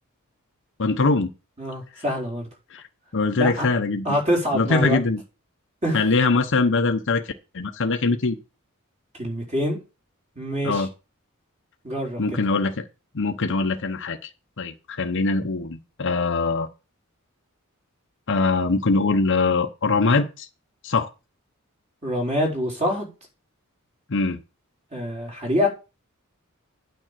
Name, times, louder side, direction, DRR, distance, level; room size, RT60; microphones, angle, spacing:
voice 1, 0.8-1.3 2.7-2.8 3.1-4.2 4.5-5.2 5.9-8.3 10.6-10.9 12.2-12.8 13.1-14.2 14.6-16.7 18.3-20.5 20.8-21.1 24.1-24.4, left 3 dB, 60° left, 4 dB, 0.9 m, -22 dB
voice 2, 1.6-2.5 3.4-3.7 4.0-5.0 5.8-6.0 9.2-9.8 10.3-10.9 11.8-12.4 22.0-23.1 24.9-25.7, equal, 30° right, 0 dB, 4.6 m, -25 dB
9.2 x 5.2 x 7.6 m, 0.31 s
head